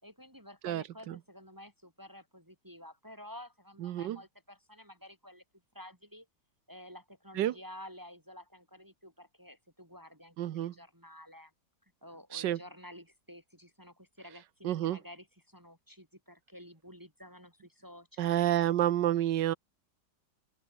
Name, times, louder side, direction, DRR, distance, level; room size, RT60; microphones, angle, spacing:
voice 1, 0.0-5.4 5.7-6.3 6.7-11.5 12.0-18.7, left 1 dB, 10° right, 4.9 m, -51 dB
voice 2, 0.6-1.1 3.8-4.2 7.4-7.5 10.4-10.7 12.3-12.6 14.6-15.0 18.2-19.5, right 12 dB, 80° right, 1.5 m, -29 dB
open air
omnidirectional pair, 1.9 m